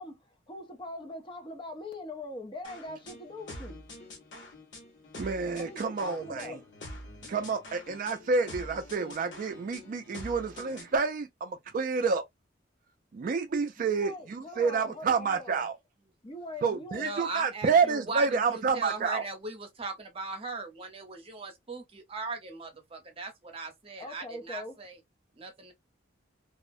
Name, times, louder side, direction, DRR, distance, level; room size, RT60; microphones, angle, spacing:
voice 1, 0.0-3.8 5.5-6.6 13.8-15.6 16.2-17.2 24.0-24.8, left 2 dB, 30° left, 0.6 m, -42 dB
sound 1, 2.6-11.0, left 1 dB, 90° left, 1.0 m, -46 dB
voice 2, 5.2-6.6 7.3-12.2 13.1-15.8 16.6-19.2, right 5 dB, 50° right, 0.3 m, -29 dB
voice 3, 16.9-25.0 25.3-25.7, right 3 dB, 30° right, 0.8 m, -39 dB
2.3 x 2.1 x 2.5 m
head